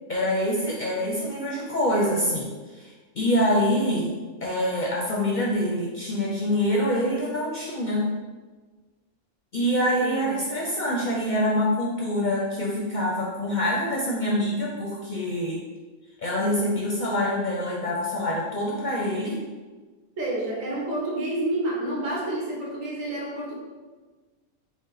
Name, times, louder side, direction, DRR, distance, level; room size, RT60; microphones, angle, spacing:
voice 1, 0.1-2.5 2.7-4.1 4.4-8.1 9.5-15.6 16.2-19.4, equal, 50° left, -4 dB, 0.6 m, -25 dB
voice 2, 9.8-10.4 20.2-23.5, right 1 dB, 80° right, -2 dB, 1.3 m, -29 dB
5.1 x 2.1 x 3.9 m, 1.3 s
omnidirectional pair, 1.4 m